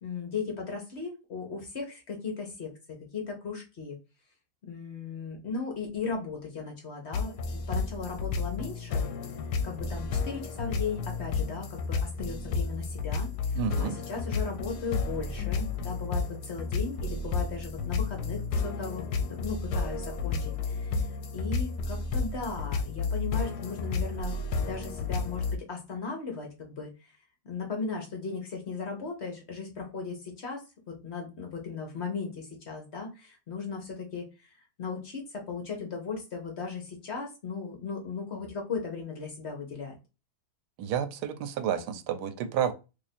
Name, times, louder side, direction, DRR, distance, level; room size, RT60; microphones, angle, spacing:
voice 1, 0.0-4.0 4.6-9.0 9.6-21.0 21.3-27.1 27.4-34.5 34.8-39.9, left 5 dB, 50° left, 1.0 m, -37 dB
sound 1, 7.1-25.6, left 4 dB, 75° left, 1.1 m, -32 dB
voice 2, 13.5-13.9 40.8-42.7, right 8 dB, 85° right, 1.2 m, -30 dB
2.8 x 2.5 x 4.1 m
omnidirectional pair, 1.7 m